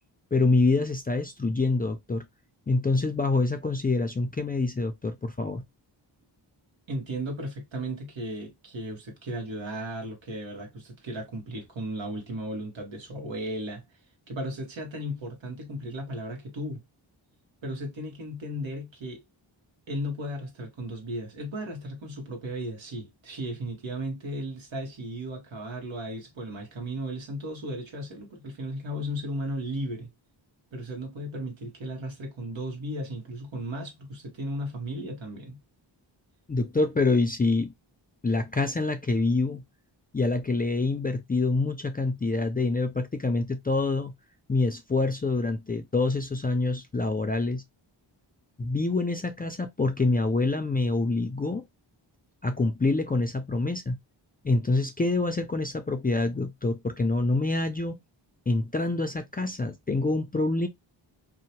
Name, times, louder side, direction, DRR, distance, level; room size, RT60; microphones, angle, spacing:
voice 1, 0.3-2.2 2.7-5.6 36.5-37.7 38.2-39.6 40.1-44.1 44.5-47.6 48.6-51.6 52.4-54.0 54.4-58.0 58.5-60.7, left 3 dB, 20° left, 0.3 m, -26 dB
voice 2, 6.9-13.8 14.3-16.8 17.6-19.2 19.9-30.1 30.7-35.6, equal, 75° right, 1.1 m, -35 dB
2.7 x 2.1 x 2.8 m
wide cardioid pair, 70°, 46 cm